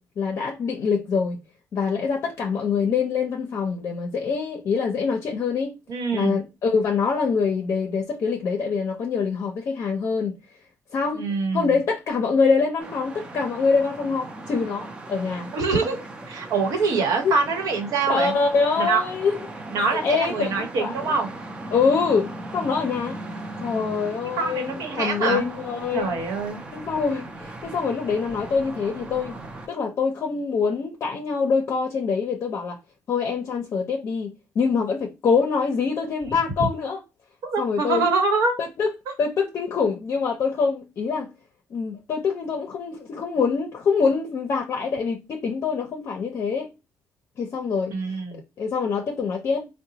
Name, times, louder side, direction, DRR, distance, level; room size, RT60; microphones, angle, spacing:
voice 1, 0.0-1.4 1.7-5.8 6.1-10.4 10.9-11.3 11.5-15.5 17.2-17.3 18.1-19.4 19.8-21.2 21.7-23.2 23.6-26.2 26.7-29.4 29.7-32.8 33.1-34.3 34.5-37.0 37.6-38.1 38.6-38.9 39.2-41.3 41.7-46.7 47.4-48.2 48.6-49.7, left 5 dB, 45° left, 0.6 m, -25 dB
voice 2, 5.9-6.4 11.1-11.7 15.5-16.0 16.3-18.3 18.8-19.0 19.7-21.3 24.4-25.4 25.9-26.6 37.4-38.6 47.9-48.4, right 4 dB, 75° right, 1.0 m, -24 dB
sound 1, 12.8-29.7, right 2 dB, 20° right, 0.5 m, -38 dB
3.9 x 2.1 x 2.8 m
cardioid pair, 160°, 6 cm